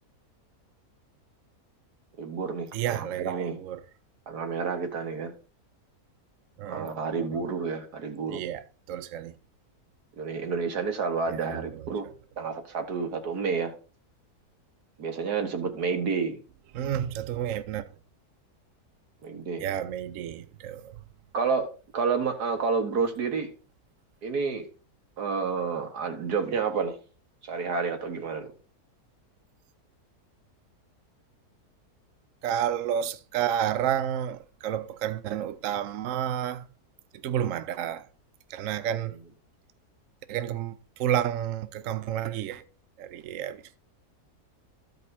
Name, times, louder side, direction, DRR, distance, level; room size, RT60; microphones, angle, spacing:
voice 1, 2.2-3.6 4.3-5.3 6.7-8.4 10.2-12.1 12.4-13.7 15.0-16.4 19.2-19.7 21.3-21.7 21.9-23.5 24.2-24.7 25.2-27.0 27.4-28.5, right 5 dB, 85° right, 2.0 m, -29 dB
voice 2, 2.7-3.8 6.6-6.9 7.2-7.3 8.3-8.6 8.9-9.3 11.4-11.8 16.7-17.8 19.6-20.9 32.4-36.6 37.2-38.1 38.5-39.1 40.3-40.7 41.0-42.6 43.0-43.8, right 10 dB, 65° right, 0.9 m, -30 dB
13.5 x 5.3 x 4.1 m
omnidirectional pair, 1.7 m